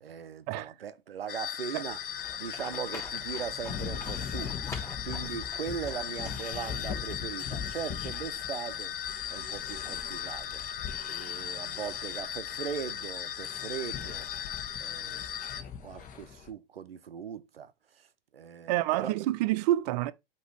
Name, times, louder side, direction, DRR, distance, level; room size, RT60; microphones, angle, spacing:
voice 1, 0.0-2.0 2.4-8.9 9.3-10.6 11.0-14.3 14.8-15.3 15.8-18.1 18.3-19.1, right 7 dB, 80° right, 0.7 m, -39 dB
sound 1, 1.3-15.6, left 9 dB, 65° left, 0.9 m, -38 dB
sound 2, 1.9-16.5, left 7 dB, 30° left, 1.3 m, -42 dB
Livestock farm animals working animals, 2.2-7.1, left 2 dB, 10° left, 2.5 m, -47 dB
voice 2, 18.7-20.1, right 15 dB, 45° right, 0.6 m, -28 dB
7.9 x 2.9 x 4.7 m
figure-of-eight pair, 95°, 29 cm